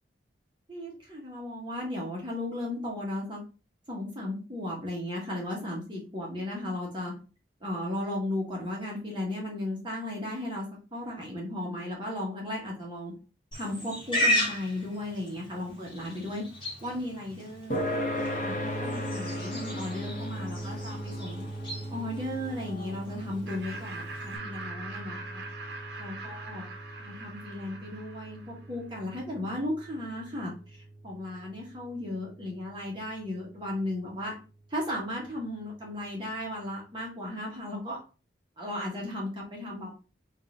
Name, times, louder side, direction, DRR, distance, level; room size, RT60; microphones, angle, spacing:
voice 1, 0.7-3.4 3.9-7.1 7.6-13.1 13.5-16.4 16.8-17.8 18.2-21.5 21.9-25.4 26.0-26.6 27.0-34.3 34.7-38.0 38.6-39.9, left 1 dB, 25° right, -3 dB, 1.3 m, -35 dB
Livestock farm animals working animals, 13.5-24.4, left 1 dB, 25° left, 1.4 m, -35 dB
sound 1, 17.7-32.6, equal, 45° left, 1.0 m, -38 dB
Laughter, 23.5-28.7, right 3 dB, 65° right, 0.8 m, -42 dB
4.0 x 2.6 x 3.7 m, 0.33 s
head